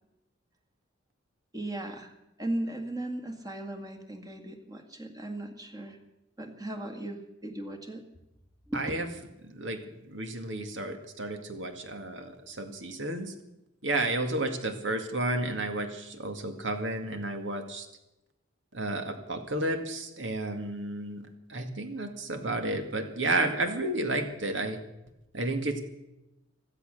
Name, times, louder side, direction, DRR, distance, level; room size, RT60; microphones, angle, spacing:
voice 1, 1.5-2.1 2.4-6.0 6.4-8.0 8.7-8.8, right 1 dB, 20° right, 4 dB, 1.9 m, -37 dB
voice 2, 8.7-9.1 9.4-13.3 13.8-17.9 18.7-21.2 21.5-24.8 25.3-25.8, right 2 dB, 70° right, 7 dB, 2.1 m, -32 dB
16.5 x 13.0 x 6.7 m, 0.90 s
head